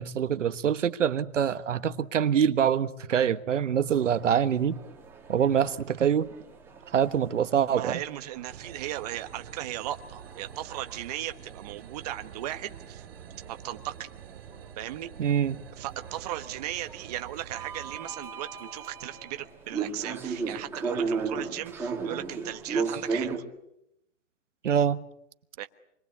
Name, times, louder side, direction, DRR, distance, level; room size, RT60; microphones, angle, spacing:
voice 1, 0.0-4.8 5.3-6.3 6.9-8.0 15.2-15.6 24.6-25.0, right 8 dB, 65° right, 1.4 m, -25 dB
sound 1, 3.9-23.4, right 4 dB, 5° right, 2.8 m, -37 dB
voice 2, 7.7-13.0 13.5-14.1 14.8-15.1 15.8-23.4 25.6-25.7, right 13 dB, 30° right, 1.3 m, -37 dB
sound 2, 8.5-18.0, right 9 dB, 45° right, 1.4 m, -48 dB
28.0 x 22.5 x 8.4 m
hypercardioid pair, 155°, 39 cm